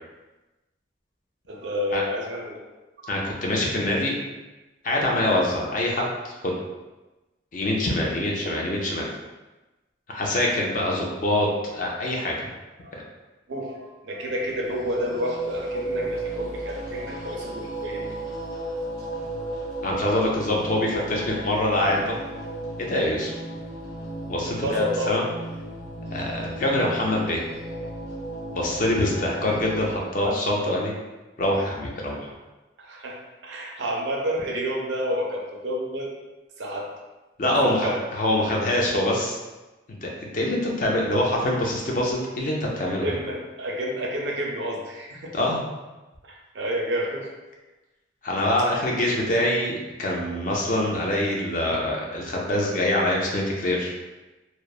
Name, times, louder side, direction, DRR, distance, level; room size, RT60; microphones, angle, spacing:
voice 1, 1.5-2.7 3.0-3.1 12.8-12.9 13.5-18.0 24.5-25.2 32.8-36.1 36.6-36.9 37.6-38.1 43.0-45.3 46.2-47.3, equal, 85° right, 0 dB, 0.5 m, -30 dB
voice 2, 3.1-4.2 4.8-6.6 7.5-9.1 10.1-12.5 19.8-22.2 22.8-23.3 24.3-25.2 26.1-27.4 28.5-30.9 31.4-32.3 37.4-39.4 40.0-43.1 45.3-45.6 48.2-54.0, left 1 dB, 45° left, -2 dB, 0.5 m, -24 dB
sound 1, 14.3-30.0, right 1 dB, 90° left, 1.0 m, -34 dB
2.9 x 2.0 x 2.3 m, 1.1 s
head